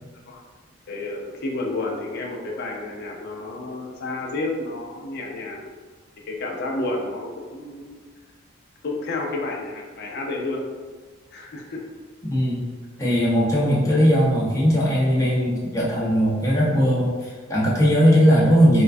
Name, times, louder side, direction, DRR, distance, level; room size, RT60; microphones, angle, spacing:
voice 1, 0.9-5.7 6.3-8.0 8.8-10.7 11.3-11.8, left 2 dB, 50° left, -1 dB, 0.5 m, -30 dB
voice 2, 13.0-18.8, equal, 15° left, -6 dB, 0.7 m, -19 dB
4.3 x 2.2 x 2.5 m, 1.4 s
head